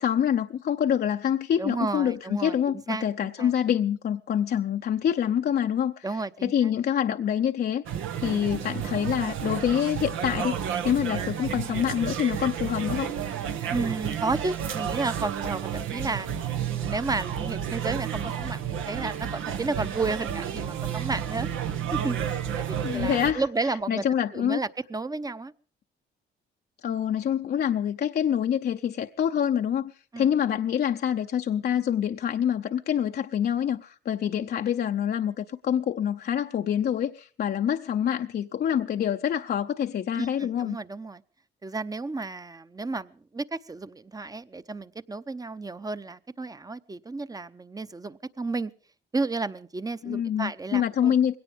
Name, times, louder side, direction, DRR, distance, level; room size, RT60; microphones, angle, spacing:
voice 1, 0.0-6.1 6.4-7.8 8.2-10.5 10.8-13.1 22.8-24.6 26.8-40.8 50.0-51.4, left 9 dB, 55° left, 0.7 m, -26 dB
voice 2, 1.6-3.1 3.4-3.5 6.0-6.5 13.7-16.3 16.7-21.5 21.9-24.0 24.3-25.5 30.1-30.3 40.1-41.2 41.6-48.7 49.1-51.1, right 3 dB, 20° right, 0.8 m, -32 dB
sound 1, 7.9-23.3, right 9 dB, 85° right, 1.3 m, -31 dB
21.0 x 17.5 x 3.6 m
cardioid pair, 90°, 20 cm